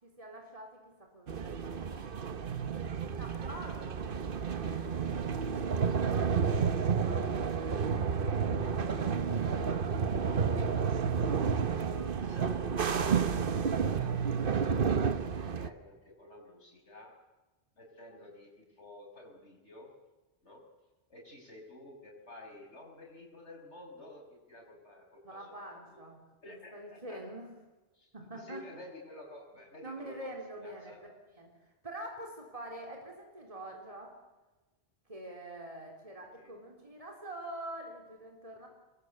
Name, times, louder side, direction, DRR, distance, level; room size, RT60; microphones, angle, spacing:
voice 1, 0.0-2.6 3.1-6.2 7.0-7.4 8.1-9.7 10.6-12.6 25.2-26.2 26.5-27.5 28.1-28.6 29.8-30.9 31.4-31.5 31.8-34.2 35.1-38.7, right 1 dB, 30° right, 1 dB, 3.8 m, -47 dB
sound 1, 1.3-15.7, right 6 dB, 55° right, 1.1 m, -31 dB
voice 2, 7.2-9.7 12.2-13.4 13.7-17.2 17.8-19.9 20.4-20.6 21.1-25.5 25.9-26.0 26.4-27.2 27.9-31.0 36.3-36.5, left 1 dB, 85° left, 0 dB, 6.2 m, -52 dB
26.0 x 21.5 x 8.2 m, 1.2 s
omnidirectional pair, 1.2 m